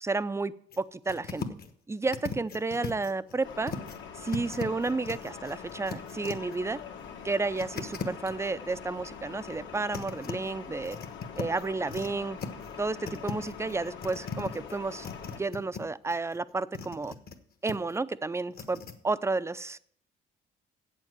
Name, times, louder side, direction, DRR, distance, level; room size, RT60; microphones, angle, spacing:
voice 1, 0.0-1.4 1.9-3.7 4.2-6.8 7.2-11.0 11.4-12.4 12.8-15.1 15.3-17.1 17.6-19.8, right 3 dB, 15° right, 15 dB, 0.5 m, -31 dB
sound 1, 0.7-0.8 1.1-1.7 2.0-4.0 4.3-6.6 7.5-8.3 9.5-10.3 10.8-12.1 12.4-12.8 13.1-15.8 16.1-17.4 17.7-17.9 18.5-18.9, left 5 dB, 50° left, 1.3 m, -38 dB
sound 2, 3.4-15.4, left 7 dB, 70° left, 1.8 m, -44 dB
8.3 x 7.4 x 7.9 m, 0.62 s
cardioid pair, 90°, 20 cm